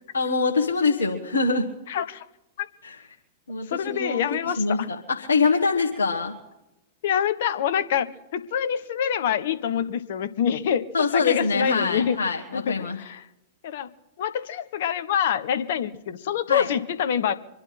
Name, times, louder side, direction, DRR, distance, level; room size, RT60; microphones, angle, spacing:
voice 1, 0.1-1.7 2.8-3.0 3.5-6.3 10.9-13.0 16.5-16.7, left 4 dB, 80° left, 0 dB, 1.7 m, -24 dB
voice 2, 1.9-2.2 2.6-2.7 3.7-4.9 7.0-10.9 11.1-12.2 12.5-13.2 13.6-13.9 14.2-17.3, left 8 dB, 60° left, 12 dB, 1.2 m, -26 dB
26.0 x 11.0 x 4.3 m, 0.91 s
figure-of-eight pair, 100°, 0 cm